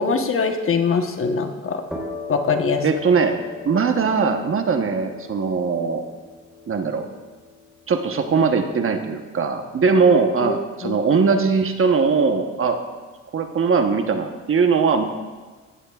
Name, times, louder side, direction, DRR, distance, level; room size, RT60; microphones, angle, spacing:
voice 1, 0.0-1.8 2.3-2.8 10.4-10.5 10.8-11.0, left 5 dB, 45° left, 5 dB, 1.1 m, -22 dB
sound 1, 1.9-9.4, left 4 dB, ahead, 3.8 m, -39 dB
voice 2, 2.8-3.4 3.6-6.0 6.7-7.1 7.9-12.8 13.3-15.0, right 5 dB, 45° right, 6 dB, 1.1 m, -20 dB
16.0 x 11.0 x 2.4 m, 1.4 s
cardioid pair, 90°, 30 cm